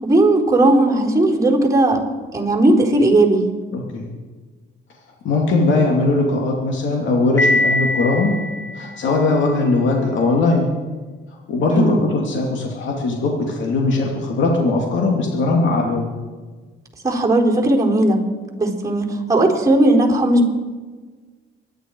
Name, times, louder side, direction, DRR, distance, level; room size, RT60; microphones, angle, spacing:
voice 1, 0.0-2.0 2.3-3.4 11.7-12.0 17.0-18.2 18.6-20.5, right 2 dB, 15° right, -2 dB, 4.3 m, -16 dB
voice 2, 3.7-4.1 5.2-8.3 8.7-10.7 11.5-16.1, left 3 dB, 70° left, 0 dB, 2.6 m, -19 dB
Piano, 7.4-9.3, left 2 dB, 10° left, 3.3 m, -22 dB
25.0 x 11.0 x 4.7 m, 1.4 s
cardioid pair, 90°, 20 cm